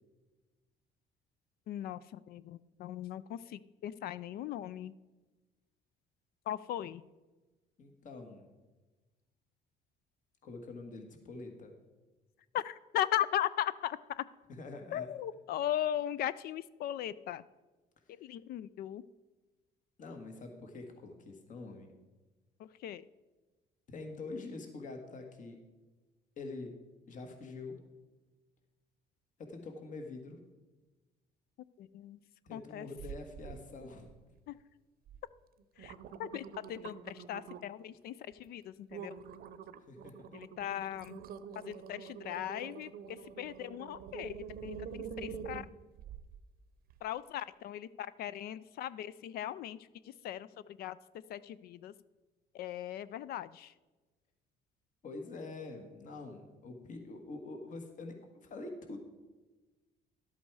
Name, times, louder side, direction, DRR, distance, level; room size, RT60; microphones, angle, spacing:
voice 1, 1.7-4.9 6.5-7.0 12.5-14.2 14.9-17.4 18.2-19.0 22.6-23.0 31.8-32.2 32.5-32.9 34.5-34.6 35.8-35.9 36.2-38.1 38.4-39.1 40.3-41.2 41.6-44.9 45.2-45.7 47.0-49.8 50.2-50.5 50.8-51.0 51.3-51.9 52.5-53.7, left 11 dB, 65° left, 17 dB, 0.4 m, -38 dB
voice 2, 7.8-8.5 10.4-11.7 14.5-15.1 20.0-21.9 23.9-25.6 26.4-26.7 27.1-27.8 29.4-30.4 32.5-34.3 39.9-40.2 55.0-58.2 58.4-59.0, left 3 dB, 50° left, 4 dB, 1.6 m, -45 dB
sound 1, 33.0-33.6 34.0-34.5 35.1-35.2 35.6-37.8 38.3-38.5 38.9-46.4 46.9-47.0, right 7 dB, 60° right, 0.7 m, -46 dB
12.0 x 8.3 x 4.7 m, 1.2 s
cardioid pair, 110°, 17 cm